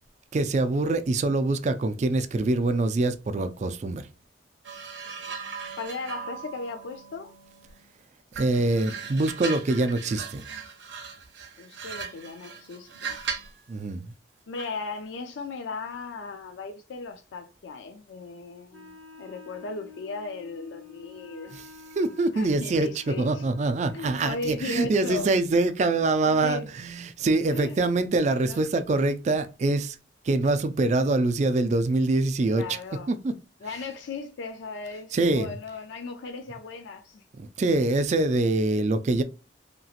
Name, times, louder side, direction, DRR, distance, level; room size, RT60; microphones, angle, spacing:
voice 1, 0.3-4.1 8.3-10.4 13.7-14.1 21.5-21.6 22.0-22.9 23.2-30.0 30.3-32.6 33.1-33.3 35.1-35.6 37.4-39.2, right 2 dB, 40° right, 0.3 m, -24 dB
sound 1, 4.6-7.9 8.3-13.6 14.6-14.8, right 6 dB, 80° right, 0.7 m, -38 dB
voice 2, 5.8-7.3 11.6-13.2 14.5-21.6 22.3-23.5 23.9-25.3 26.2-26.7 27.5-27.9 28.4-28.7 32.5-33.1 33.6-37.2, left 3 dB, 85° left, 0.4 m, -37 dB
Wind instrument woodwind instrument, 18.7-24.6, left 4 dB, 10° left, 0.8 m, -49 dB
2.9 x 2.8 x 2.4 m
head